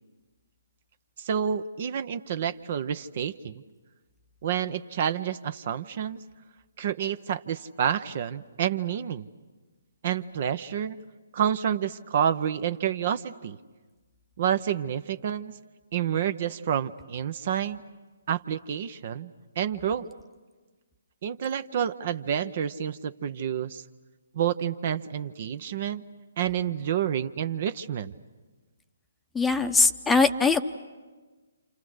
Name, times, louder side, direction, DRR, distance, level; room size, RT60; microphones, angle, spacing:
voice 1, 1.2-3.6 4.4-6.2 6.8-9.3 10.0-11.0 11.3-13.6 14.4-15.5 15.9-17.8 18.3-20.1 21.2-23.8 24.3-26.0 26.4-28.1, right 9 dB, 45° right, 13 dB, 0.8 m, -29 dB
voice 2, 29.3-30.6, left 4 dB, 5° left, 8 dB, 0.8 m, -21 dB
29.0 x 28.5 x 6.4 m, 1.3 s
figure-of-eight pair, 135°, 0 cm